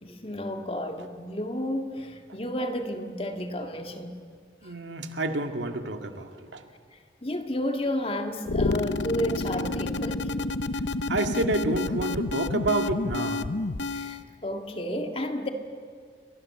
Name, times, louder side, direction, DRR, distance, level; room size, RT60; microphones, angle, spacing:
voice 1, 0.0-4.2 4.6-4.7 7.2-10.2 13.9-15.5, left 1 dB, 30° left, 2.0 m, -32 dB
voice 2, 4.6-6.6 11.1-13.5, right 2 dB, 90° right, 2.1 m, -29 dB
sound 1, 8.4-14.2, left 2 dB, 85° left, 0.9 m, -29 dB
29.5 x 23.0 x 7.7 m
head